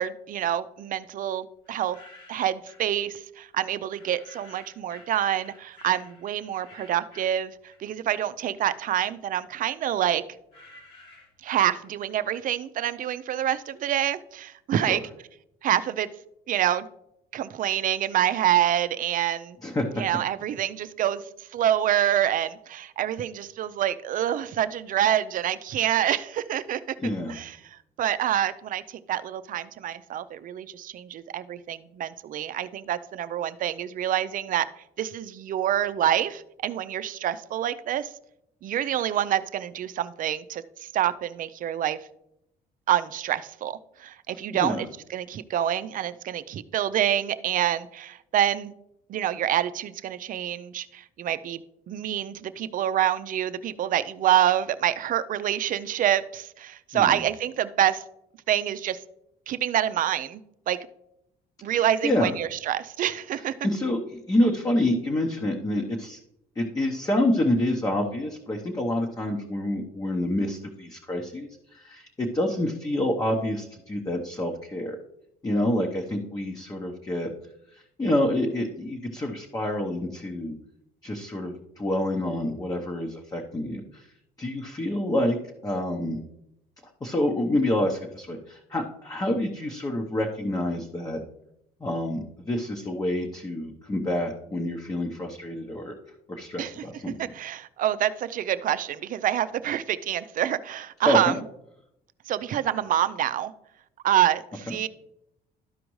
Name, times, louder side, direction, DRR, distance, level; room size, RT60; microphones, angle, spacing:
voice 1, 0.0-2.0 2.3-7.5 7.8-10.2 11.4-15.0 15.6-16.1 16.5-16.9 17.3-19.6 20.0-21.2 21.5-27.0 27.3-27.6 28.0-28.8 29.1-34.7 35.0-38.1 38.6-40.6 40.9-42.0 42.9-48.7 49.1-58.0 58.5-59.0 59.5-60.8 61.6-63.5 96.6-96.7 97.2-101.3 102.3-103.5 104.0-104.9, right 11 dB, 55° right, 13 dB, 0.5 m, -26 dB
sound 1, 1.7-2.9 3.9-8.1 8.5-12.2, left 2 dB, 70° left, 2.3 m, -53 dB
voice 2, 19.6-20.0 27.0-27.4 44.6-44.9 56.9-57.2 61.7-62.4 63.6-66.2 66.6-75.0 75.4-77.3 77.7-80.5 81.0-84.1 84.4-85.4 85.6-86.2 87.0-91.2 91.8-95.9 96.3-97.3 101.0-101.3 104.7-104.8, left 1 dB, 20° left, 1 dB, 0.9 m, -27 dB
12.5 x 5.0 x 3.1 m, 0.80 s
cardioid pair, 110°, 17 cm